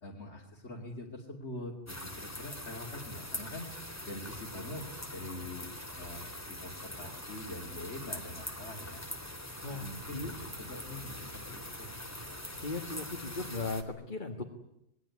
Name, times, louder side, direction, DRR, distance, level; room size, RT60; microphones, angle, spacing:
voice 1, 0.0-3.7 4.1-5.7 6.0-9.0 9.7-10.3 10.6-11.9, left 1 dB, 75° left, -2 dB, 3.1 m, -44 dB
sound 1, 1.9-13.8, left 1 dB, 15° left, 2.5 m, -43 dB
sound 2, 2.1-13.3, right 1 dB, 85° right, 4.8 m, -65 dB
voice 2, 9.6-10.3 12.6-14.4, left 3 dB, 45° left, 3 dB, 2.1 m, -37 dB
26.0 x 20.0 x 9.7 m, 0.81 s
omnidirectional pair, 1.2 m